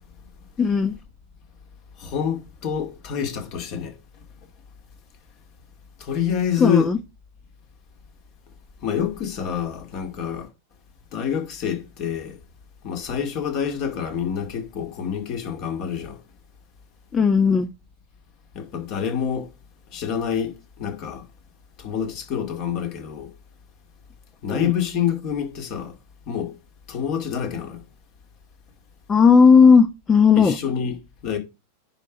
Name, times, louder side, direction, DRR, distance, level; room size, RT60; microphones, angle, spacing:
voice 1, 0.6-0.9 6.6-7.0 17.1-17.7 24.5-24.7 29.1-30.6, left 5 dB, 20° left, 0.7 m, -15 dB
voice 2, 2.0-4.0 6.0-6.9 8.8-10.5 11.1-12.4 12.8-16.2 18.5-19.5 19.9-21.2 21.8-23.3 24.4-25.9 26.3-26.5 26.9-27.8 30.4-31.4, left 8 dB, 40° left, 2.3 m, -27 dB
9.9 x 4.7 x 5.0 m
figure-of-eight pair, 90°, 0 cm